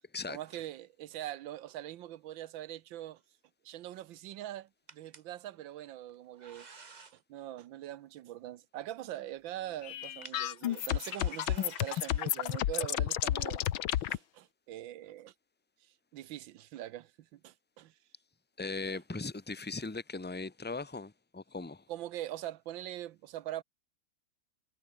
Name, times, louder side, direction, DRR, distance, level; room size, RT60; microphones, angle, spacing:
voice 1, 0.3-3.2 3.6-6.7 7.1-13.6 13.9-15.3 16.1-17.9 21.9-23.6, right 13 dB, 75° right, 1.4 m, -43 dB
sound 1, 4.9-5.2 6.1-7.2 9.1-9.2 9.9-13.1, right 4 dB, 30° right, 1.0 m, -54 dB
sound 2, 9.8-14.2, left 12 dB, 80° left, 1.7 m, -32 dB
voice 2, 18.6-21.8, left 3 dB, 10° left, 0.5 m, -39 dB
omnidirectional pair, 2.2 m